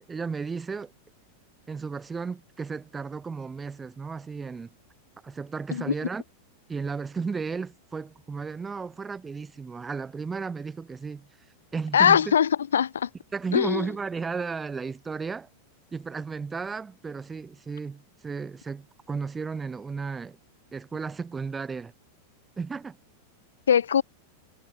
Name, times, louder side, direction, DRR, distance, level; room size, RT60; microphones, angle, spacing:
voice 1, 0.1-0.9 1.7-4.7 5.2-6.2 6.7-11.3 11.7-12.3 13.3-15.5 15.9-20.4 20.7-21.9 22.6-23.0, right 5 dB, 15° right, 1.8 m, -34 dB
voice 2, 11.9-13.1 13.5-13.9 23.7-24.0, left 8 dB, 65° left, 2.2 m, -21 dB
figure-of-eight pair, 90°, 0 cm